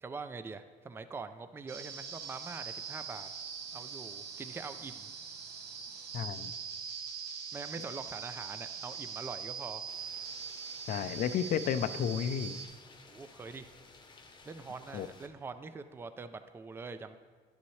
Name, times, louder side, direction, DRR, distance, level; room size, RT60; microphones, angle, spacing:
voice 1, 0.0-3.3 3.7-5.1 7.5-9.8 13.1-13.7 14.4-17.2, right 4 dB, 15° right, 10 dB, 0.3 m, -44 dB
sound 1, 1.7-12.7, right 6 dB, 75° right, 1.0 m, -42 dB
voice 2, 6.1-6.5 10.9-12.6 14.9-15.1, left 8 dB, 55° left, 13 dB, 0.4 m, -32 dB
sound 2, 9.9-15.3, left 3 dB, 25° left, 0.8 m, -56 dB
10.5 x 7.0 x 3.2 m, 1.5 s
cardioid pair, 110°, 17 cm